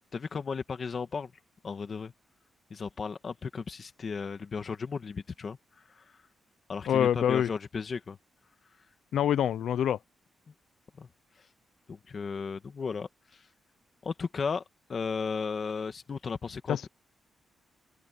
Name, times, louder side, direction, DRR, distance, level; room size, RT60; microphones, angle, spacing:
voice 1, 0.1-1.3 1.6-2.1 2.7-5.6 6.0-6.2 6.7-8.2 11.0-11.1 11.9-13.4 14.0-14.6 14.9-16.9, left 5 dB, 35° left, 1.5 m, -35 dB
voice 2, 6.9-7.5 9.1-10.0 16.7-16.8, left 9 dB, 75° left, 0.5 m, -25 dB
open air
wide cardioid pair, 170°, 0 cm